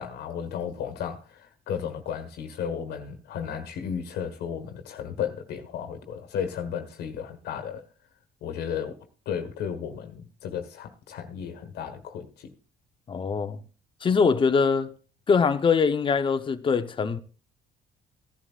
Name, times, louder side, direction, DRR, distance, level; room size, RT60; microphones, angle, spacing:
voice 1, 0.0-1.4 1.7-7.8 8.4-12.5, left 8 dB, 75° left, 1.5 m, -34 dB
voice 2, 13.1-13.6 14.0-14.9 15.3-17.2, left 5 dB, 30° left, 0.9 m, -23 dB
16.5 x 11.0 x 2.5 m
cardioid pair, 110°, 17 cm